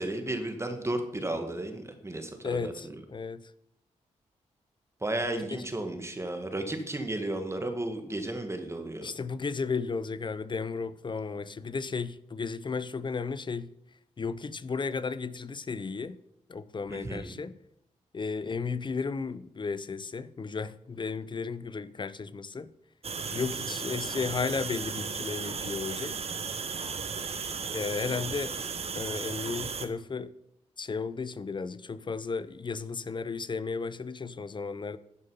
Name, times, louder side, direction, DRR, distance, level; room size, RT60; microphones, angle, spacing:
voice 1, 0.0-2.9 5.0-9.1 16.9-17.4, right 1 dB, 20° right, 1.5 m, -33 dB
voice 2, 2.4-3.4 5.5-5.6 9.0-13.7 14.2-16.2 16.5-17.6 18.1-22.7 23.3-26.2 27.7-28.6 28.9-30.3 30.8-35.0, left 5 dB, 35° left, 0.5 m, -34 dB
sound 1, 23.0-29.9, right 5 dB, 50° right, 0.9 m, -35 dB
11.0 x 5.4 x 5.5 m
cardioid pair, 60°, 13 cm